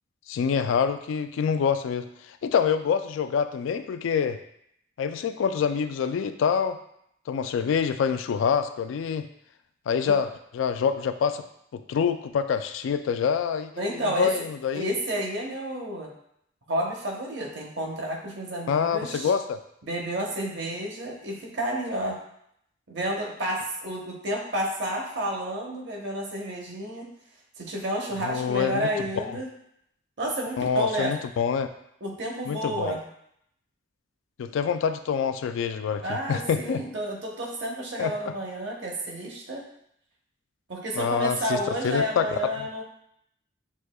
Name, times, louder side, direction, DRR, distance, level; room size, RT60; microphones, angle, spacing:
voice 1, 0.3-4.4 5.0-6.8 7.3-9.3 9.9-10.3 10.5-11.4 11.7-15.0 18.7-19.6 28.2-28.9 29.2-29.4 30.6-31.7 32.4-33.0 34.4-36.8 38.0-38.3 41.0-42.7, left 7 dB, 85° left, 11 dB, 0.3 m, -26 dB
voice 2, 13.8-14.3 14.7-16.1 16.7-19.3 19.8-22.2 22.9-27.1 27.6-29.5 30.2-31.2 32.0-33.0 36.0-39.6 40.7-42.8, right 1 dB, 65° right, -1 dB, 0.9 m, -30 dB
6.1 x 2.7 x 2.2 m, 0.73 s
head